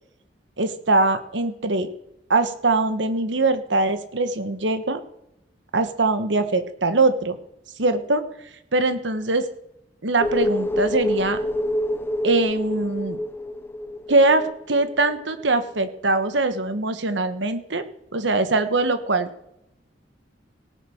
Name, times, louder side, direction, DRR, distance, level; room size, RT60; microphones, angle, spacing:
voice 1, 0.6-1.9 2.3-5.0 5.7-7.4 7.8-8.2 8.7-9.5 10.0-11.4 12.2-13.2 14.1-17.8 18.1-19.3, right 2 dB, 75° right, 10 dB, 1.3 m, -22 dB
sound 1, 10.2-15.4 15.7-15.8, left 1 dB, 10° left, 0.4 m, -27 dB
18.0 x 6.8 x 6.5 m, 0.79 s
head